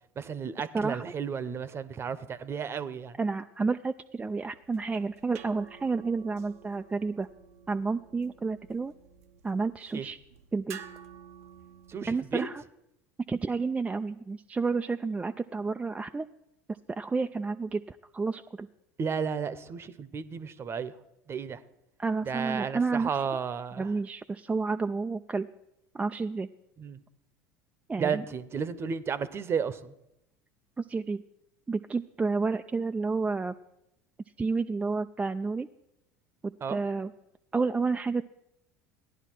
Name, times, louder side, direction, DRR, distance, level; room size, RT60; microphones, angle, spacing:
voice 1, 0.2-3.2 9.9-10.1 11.9-12.5 19.0-20.9 21.3-21.6 22.3-23.9 26.8-27.0 28.0-29.9 36.6-36.8, right 6 dB, 30° right, 15 dB, 0.9 m, -33 dB
voice 2, 3.2-7.3 7.7-8.9 9.4-10.2 10.5-10.8 12.1-12.6 13.3-16.3 16.9-18.7 22.0-23.1 23.8-25.5 25.9-26.5 27.9-28.2 30.8-31.2 31.7-33.5 34.4-35.7 36.7-37.1 37.5-38.2, right 4 dB, 15° right, 7 dB, 0.4 m, -30 dB
sound 1, 4.5-12.6, right 8 dB, 80° right, 0.8 m, -51 dB
16.0 x 11.0 x 4.6 m, 0.85 s
hypercardioid pair, 80°, 8 cm